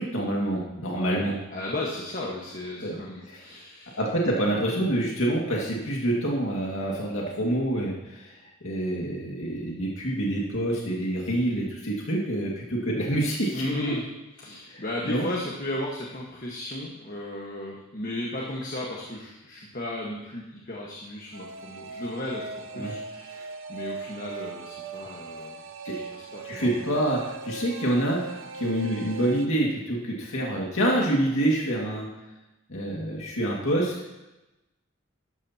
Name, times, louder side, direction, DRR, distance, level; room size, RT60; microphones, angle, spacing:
voice 1, 0.0-1.4 2.8-3.0 3.3-3.4 4.0-13.7 14.7-15.3 22.7-22.9 25.8-26.0 26.4-32.1 32.7-33.9, right 1 dB, 75° left, -3 dB, 2.1 m, -27 dB
voice 2, 0.9-4.0 13.5-14.1 14.4-25.6 25.9-26.9, left 1 dB, 40° left, -2 dB, 1.4 m, -35 dB
sound 1, 21.3-29.5, right 3 dB, 70° right, 0.8 m, -39 dB
13.0 x 12.0 x 2.9 m, 1.0 s
head